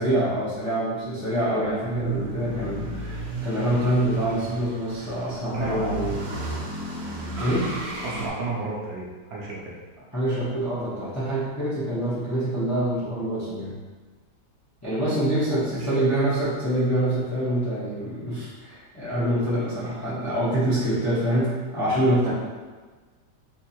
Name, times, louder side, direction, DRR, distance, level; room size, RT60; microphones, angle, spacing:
voice 1, 0.0-6.2 7.4-7.7 10.1-13.8 14.8-22.3, right 1 dB, 20° left, -11 dB, 0.4 m, -25 dB
sound 1, 1.6-8.3, right 2 dB, 85° right, 1.3 m, -33 dB
voice 2, 5.5-6.0 7.4-7.5 8.0-9.8 15.7-16.0 22.2-22.3, right 3 dB, 65° right, -5 dB, 1.1 m, -32 dB
3.5 x 2.6 x 2.8 m, 1.4 s
omnidirectional pair, 1.8 m